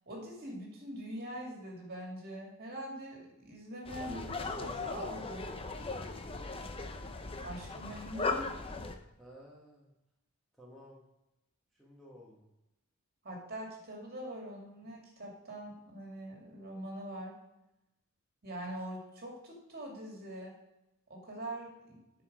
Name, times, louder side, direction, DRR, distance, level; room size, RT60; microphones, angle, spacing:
voice 1, 0.1-5.5 7.4-8.5 13.2-17.3 18.4-20.5 21.1-22.0, right 1 dB, 45° right, -1 dB, 2.4 m, -43 dB
sound 1, 3.9-9.0, left 3 dB, 25° left, 0.6 m, -38 dB
voice 2, 5.8-6.6 9.2-9.9 10.6-11.1 11.7-12.5, equal, ahead, -5 dB, 1.2 m, -54 dB
9.4 x 4.9 x 4.9 m, 0.92 s
head